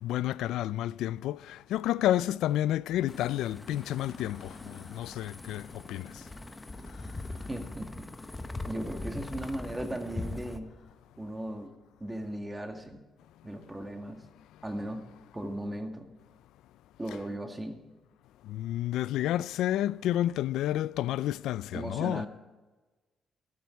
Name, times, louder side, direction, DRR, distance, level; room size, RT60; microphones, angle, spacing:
voice 1, 0.0-6.2 18.4-22.3, left 13 dB, 85° left, 0.3 m, -30 dB
sound 1, 2.9-10.9, left 5 dB, 65° left, 4.2 m, -57 dB
sound 2, 3.1-10.6, left 2 dB, 15° left, 0.9 m, -41 dB
voice 2, 7.5-8.1 8.7-10.7 11.2-11.7 12.0-13.0 13.4-14.2 14.6-15.0 15.3-16.1 17.0-17.8 21.7-22.3, right 1 dB, 15° right, 2.1 m, -37 dB
13.5 x 13.5 x 4.6 m
cardioid pair, 90°, 0 cm